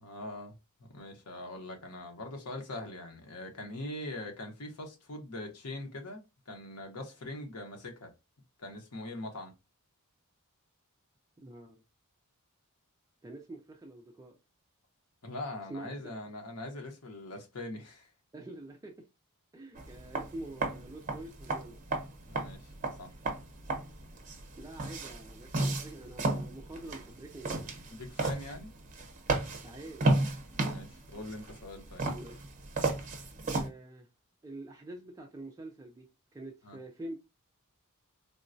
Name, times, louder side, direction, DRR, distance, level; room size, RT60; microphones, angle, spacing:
voice 1, 0.0-8.1 8.6-9.5 15.2-18.1 22.2-22.7 23.0-23.1 27.9-28.7 30.5-32.0 36.6-36.8, left 1 dB, 80° left, 0.9 m, -42 dB
voice 2, 11.4-11.8 13.2-14.4 15.7-16.1 18.3-19.1 19.5-21.8 24.6-27.8 29.6-30.1 32.0-32.5 33.5-34.1 34.4-37.2, right 1 dB, 15° right, 0.4 m, -46 dB
sound 1, 19.7-33.7, right 2 dB, 35° right, 0.8 m, -34 dB
3.7 x 2.1 x 2.5 m
head